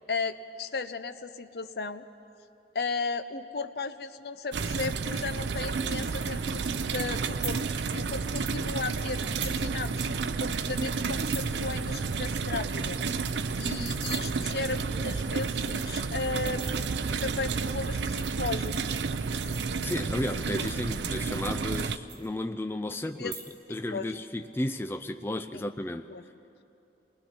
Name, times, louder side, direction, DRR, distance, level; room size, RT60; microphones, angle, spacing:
voice 1, 0.1-2.0 2.7-7.6 7.9-10.0 10.4-13.0 13.6-16.9 17.2-19.0 23.0-23.3 23.9-24.2 25.5-25.6 26.1-26.2, left 4 dB, 60° left, 11 dB, 0.7 m, -35 dB
sound 1, 4.5-22.0, right 4 dB, 85° right, 0.5 m, -31 dB
sound 2, 7.4-7.6 8.5-8.6 9.1-9.6 9.9-10.0 10.3-10.5 11.0-11.5 11.9-12.0 12.3-12.4 12.7-12.8 13.1-14.2 14.9-15.0 15.3-15.9 16.4-16.9 17.9-20.1 20.7-21.8 22.1-22.7 23.1-23.7 24.0-24.4, right 5 dB, 60° right, 5.2 m, -43 dB
voice 2, 19.8-23.3 23.7-26.1, left 1 dB, 15° left, 8 dB, 0.4 m, -33 dB
28.5 x 20.0 x 4.4 m, 2.9 s
head